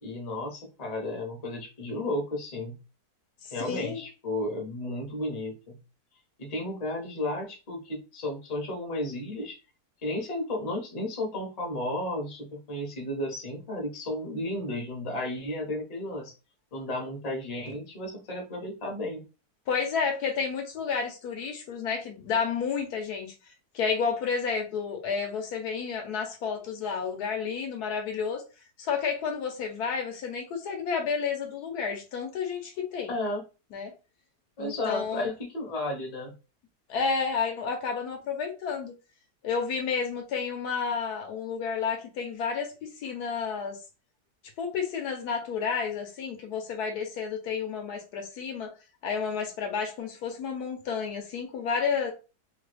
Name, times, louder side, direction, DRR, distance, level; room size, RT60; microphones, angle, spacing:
voice 1, 0.0-2.8 3.5-5.8 6.4-9.6 10.0-16.3 16.7-19.2 33.1-33.4 34.6-36.3, left 1 dB, 30° left, 0.7 m, -33 dB
voice 2, 3.4-4.0 19.7-28.4 28.8-33.1 33.7-33.9 34.6-35.3 36.9-39.0 39.4-43.8 44.6-48.7 49.0-52.1, left 6 dB, 75° left, 1.3 m, -31 dB
3.2 x 2.2 x 3.3 m
omnidirectional pair, 1.7 m